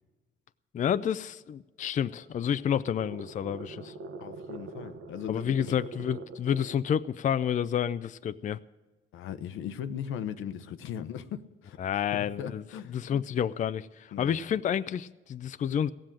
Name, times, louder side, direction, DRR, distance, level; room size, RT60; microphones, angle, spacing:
voice 1, 0.7-3.9 5.3-8.6 11.8-12.6 12.9-15.9, left 9 dB, 40° left, 13 dB, 0.4 m, -29 dB
sound 1, 1.9-6.9, right 3 dB, 75° right, 1.3 m, -44 dB
voice 2, 4.2-5.7 9.1-11.8 12.1-13.1 14.1-14.4, left 9 dB, 85° left, 11 dB, 0.8 m, -38 dB
16.0 x 7.7 x 8.8 m, 1.2 s
cardioid pair, 90°, 20 cm